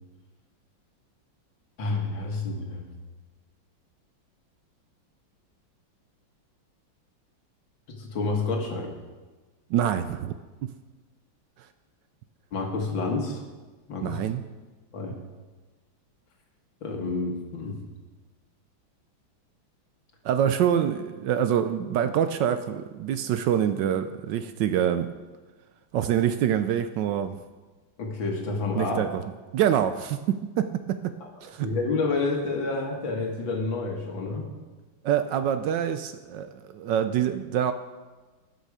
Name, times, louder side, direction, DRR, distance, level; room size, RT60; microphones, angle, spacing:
voice 1, 1.8-2.8 7.9-8.9 12.5-13.4 13.9-14.2 14.9-15.2 16.8-17.8 28.0-29.0 31.2-31.3 31.6-34.5, left 3 dB, 70° left, 2 dB, 2.4 m, -29 dB
voice 2, 9.7-10.3 10.6-10.7 14.0-14.4 20.2-25.1 25.9-27.4 28.7-29.2 29.5-31.1 31.4-31.7 35.0-37.7, right 9 dB, 75° right, 10 dB, 1.1 m, -25 dB
19.5 x 6.5 x 4.9 m, 1.3 s
omnidirectional pair, 2.2 m